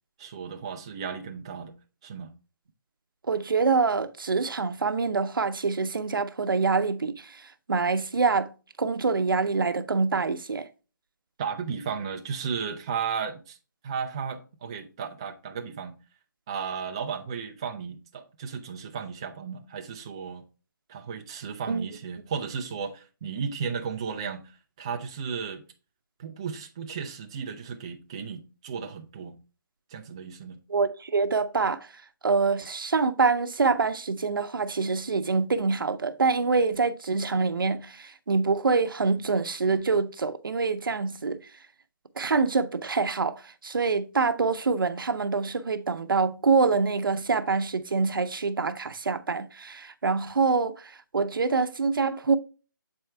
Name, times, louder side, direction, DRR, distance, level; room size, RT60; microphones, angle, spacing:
voice 1, 0.2-1.7 2.0-2.3 11.4-13.6 13.8-15.9 16.5-20.4 20.9-25.6 26.2-29.4 29.9-30.6, right 6 dB, 15° right, 0.3 m, -34 dB
voice 2, 3.3-8.5 8.8-10.7 21.7-21.9 30.7-31.9 32.2-41.4 42.2-52.4, right 4 dB, 80° right, 0.7 m, -25 dB
7.6 x 4.5 x 3.3 m
hypercardioid pair, 165°, 11 cm